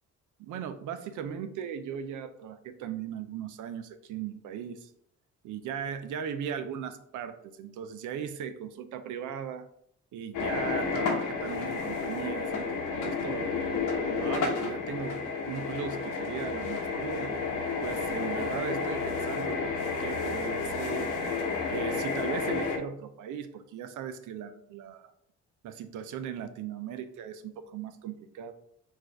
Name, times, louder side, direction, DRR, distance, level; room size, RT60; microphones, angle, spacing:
voice 1, 0.4-4.9 5.4-9.7 10.1-13.5 14.2-17.4 17.8-21.1 21.7-25.1 25.6-28.5, right 8 dB, 80° right, 10 dB, 0.6 m, -38 dB
sound 1, 10.3-22.8, left 4 dB, 80° left, 1.1 m, -31 dB
4.6 x 2.5 x 4.5 m, 0.69 s
cardioid pair, 90°, 30 cm